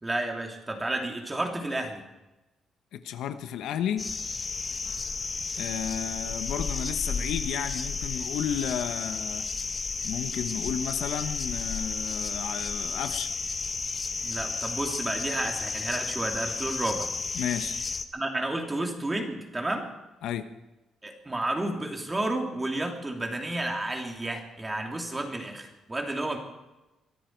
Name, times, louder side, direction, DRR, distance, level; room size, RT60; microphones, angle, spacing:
voice 1, 0.0-2.0 14.2-17.1 18.1-19.8 21.0-26.4, right 1 dB, 15° right, 2 dB, 2.9 m, -31 dB
voice 2, 2.9-4.1 5.6-9.4 10.0-13.3 17.3-17.8 20.2-20.5, left 9 dB, 90° left, 9 dB, 1.1 m, -32 dB
sound 1, 4.0-18.0, left 4 dB, 30° left, 1.0 m, -32 dB
23.0 x 13.5 x 4.7 m, 1.0 s
cardioid pair, 130°, 0 cm